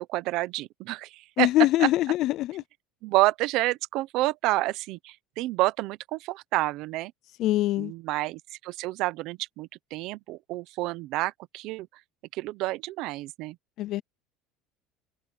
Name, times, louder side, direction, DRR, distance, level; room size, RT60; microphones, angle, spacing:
voice 1, 0.0-1.5 1.8-1.9 3.0-7.1 7.8-11.9 12.3-13.6, right 18 dB, 55° right, 0.8 m, -29 dB
voice 2, 1.4-2.6 7.4-7.9 13.8-14.0, left 15 dB, 45° left, 0.4 m, -23 dB
cardioid pair, 155°, 0 cm